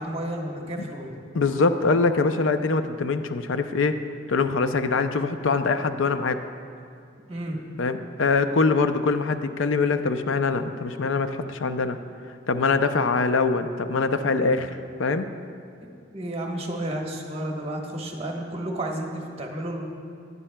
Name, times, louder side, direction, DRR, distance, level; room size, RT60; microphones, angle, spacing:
voice 1, 0.0-1.2 7.3-7.6 15.8-19.8, right 1 dB, 30° right, 0 dB, 1.3 m, -32 dB
voice 2, 1.3-4.0 4.3-6.5 7.8-12.0 12.5-15.3, left 4 dB, 85° left, 9 dB, 0.5 m, -23 dB
17.0 x 11.0 x 2.3 m, 2.3 s
head